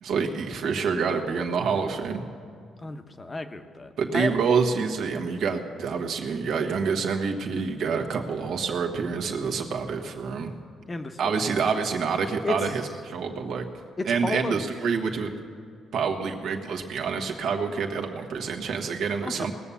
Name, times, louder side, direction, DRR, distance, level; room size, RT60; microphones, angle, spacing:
voice 1, 0.0-2.2 4.0-10.5 11.2-13.6 14.0-15.3 15.9-19.5, right 5 dB, 75° right, 2 dB, 1.4 m, -27 dB
voice 2, 2.8-4.3 10.9-11.6 12.4-12.6 14.0-14.6 19.2-19.5, left 3 dB, 25° left, 7 dB, 1.0 m, -32 dB
19.5 x 7.1 x 7.1 m, 2.3 s
cardioid pair, 90°, 0 cm